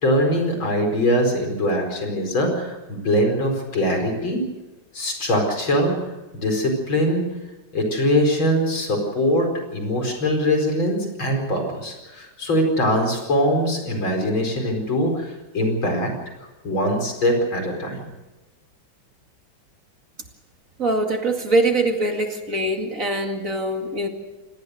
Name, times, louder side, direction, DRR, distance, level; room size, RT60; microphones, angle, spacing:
voice 1, 0.0-4.4 4.9-7.3 7.7-18.0, equal, 85° left, 4 dB, 5.6 m, -22 dB
voice 2, 20.8-24.1, right 2 dB, 40° right, 4 dB, 2.6 m, -23 dB
27.0 x 19.0 x 6.6 m, 1.1 s
omnidirectional pair, 2.1 m